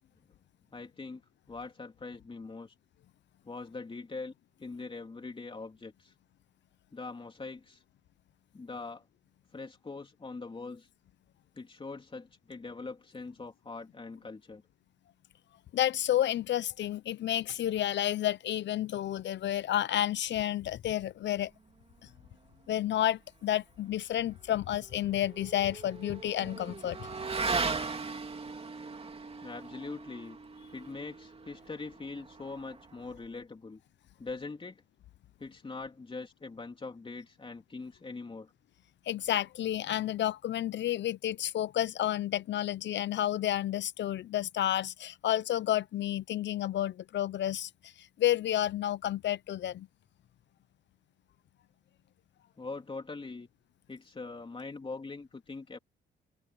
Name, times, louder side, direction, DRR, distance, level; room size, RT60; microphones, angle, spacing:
voice 1, 0.7-1.2 1.5-2.7 3.4-4.3 4.6-6.1 6.9-7.8 8.5-9.0 9.5-10.9 11.5-14.6 29.4-30.4 30.7-33.8 34.2-34.8 35.4-38.5 52.6-53.5 53.9-55.8, left 3 dB, 25° left, 3.2 m, -42 dB
voice 2, 15.7-21.5 22.7-27.1 39.1-49.9, left 12 dB, 65° left, 0.9 m, -31 dB
Motorcycle / Accelerating revving vroom, 24.5-33.3, right 4 dB, 30° right, 2.7 m, -38 dB
cardioid pair, 90°, 20 cm